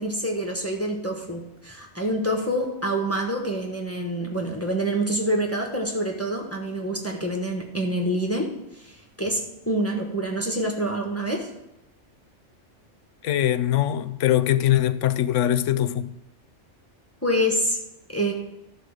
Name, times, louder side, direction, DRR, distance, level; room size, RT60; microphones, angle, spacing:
voice 1, 0.0-8.5 8.7-9.4 9.7-11.5 17.2-17.8 18.1-18.3, right 1 dB, 10° left, 1.3 m, -26 dB
voice 2, 13.2-16.1, left 12 dB, 85° left, 0.9 m, -22 dB
12.5 x 4.4 x 6.5 m
omnidirectional pair, 1.3 m